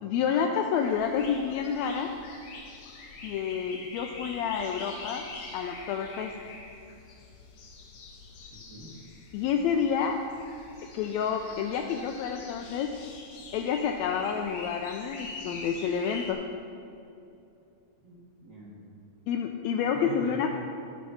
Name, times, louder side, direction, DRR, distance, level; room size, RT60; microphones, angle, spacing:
voice 1, 0.0-2.1 3.2-5.2 5.5-6.4 9.3-10.2 10.8-13.0 13.5-16.4 19.3-20.5, left 7 dB, 80° left, 4 dB, 1.7 m, -29 dB
sound 1, 0.8-16.3, left 3 dB, 60° left, 1.8 m, -45 dB
voice 2, 8.5-8.9 18.0-18.9 19.8-20.5, right 1 dB, 45° right, -7 dB, 2.0 m, -44 dB
13.5 x 5.3 x 5.7 m, 2.7 s
omnidirectional pair, 3.4 m